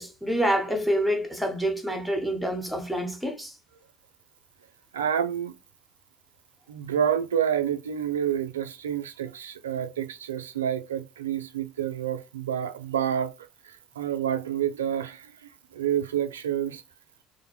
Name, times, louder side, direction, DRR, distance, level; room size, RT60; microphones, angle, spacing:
voice 1, 0.0-3.5, equal, ahead, 0.9 m, -27 dB
voice 2, 4.9-5.5 6.7-13.3 13.6-16.8, right 9 dB, 90° right, 0.3 m, -28 dB
2.5 x 2.1 x 2.9 m
hypercardioid pair, 70°, 0 cm